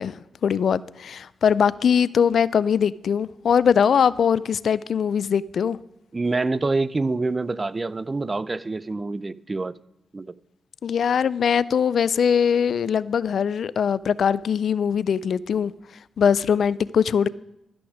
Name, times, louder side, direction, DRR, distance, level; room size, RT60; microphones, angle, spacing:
voice 1, 0.0-5.8 10.8-15.7 16.2-17.3, left 7 dB, 70° left, 0.3 m, -21 dB
voice 2, 6.1-9.7 10.1-10.3, right 3 dB, 30° right, 0.4 m, -26 dB
12.5 x 5.9 x 4.9 m
cardioid pair, 55°, 0 cm